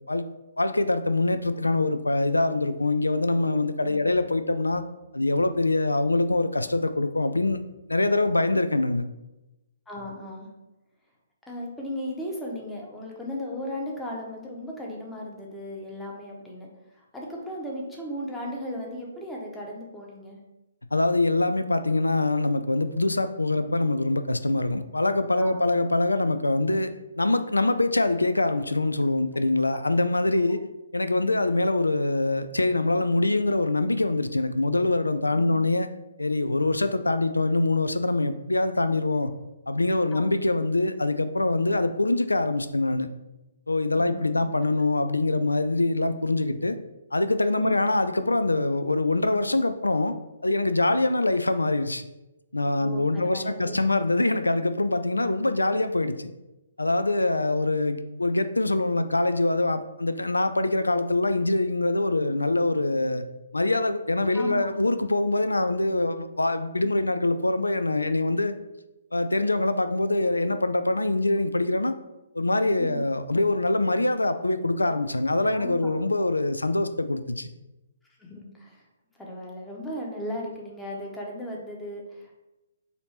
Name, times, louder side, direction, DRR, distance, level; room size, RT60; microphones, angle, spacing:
voice 1, 0.6-4.8 5.1-7.6 7.9-9.0 20.9-30.6 30.9-35.9 36.2-39.3 39.7-43.1 43.7-46.8 47.1-50.2 50.4-52.0 52.5-56.3 56.8-63.2 63.5-68.6 69.1-71.9 72.3-77.5, left 2 dB, 80° left, 11 dB, 0.3 m, -24 dB
voice 2, 3.8-4.2 8.3-8.5 9.9-10.5 11.5-16.7 16.9-20.4 25.4-25.8 29.3-29.4 40.1-40.2 43.9-44.4 47.5-47.9 52.8-53.8 64.3-64.7 72.8-73.0 75.5-75.9 78.2-78.8 79.2-82.3, left 1 dB, 5° left, -2 dB, 0.9 m, -36 dB
4.2 x 2.7 x 4.3 m, 0.98 s
figure-of-eight pair, 130°, 0 cm